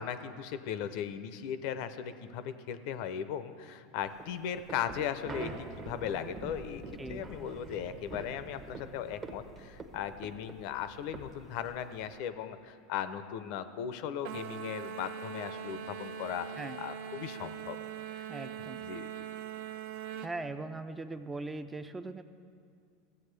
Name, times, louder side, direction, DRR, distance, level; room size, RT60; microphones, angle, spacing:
voice 1, 0.0-6.8 7.1-16.5 16.8-17.8 18.1-18.3 18.8-19.3, left 9 dB, 60° left, 12 dB, 0.5 m, -37 dB
sound 1, 4.1-12.2, right 3 dB, 30° right, 0.8 m, -46 dB
sound 2, 14.2-20.3, right 8 dB, 70° right, 0.5 m, -41 dB
voice 2, 18.3-18.8 20.2-22.2, right 2 dB, 15° right, 10 dB, 0.4 m, -40 dB
15.0 x 7.6 x 3.3 m, 2.3 s
supercardioid pair, 110°, 0 cm